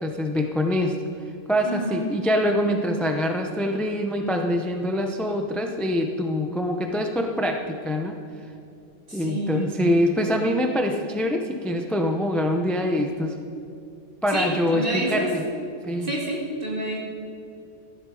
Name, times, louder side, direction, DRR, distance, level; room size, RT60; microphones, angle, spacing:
voice 1, 0.0-1.0 1.5-8.1 9.1-13.4 14.2-15.4 15.8-16.1, equal, ahead, 4 dB, 0.7 m, -24 dB
voice 2, 1.6-2.1 9.1-9.7 14.3-15.3 16.0-17.0, right 1 dB, 45° right, -2 dB, 2.7 m, -28 dB
14.5 x 12.0 x 4.9 m, 2.6 s
omnidirectional pair, 1.2 m